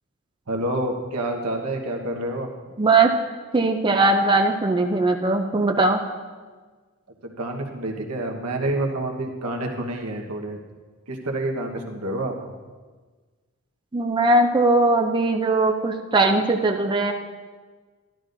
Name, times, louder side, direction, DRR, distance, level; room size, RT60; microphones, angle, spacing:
voice 1, 0.5-2.5 7.2-10.6 11.1-12.5, right 1 dB, 85° right, 1 dB, 1.3 m, -28 dB
voice 2, 2.8-3.1 3.5-6.0 13.9-17.1, right 2 dB, 20° right, 3 dB, 0.5 m, -20 dB
13.0 x 12.0 x 2.7 m, 1.4 s
head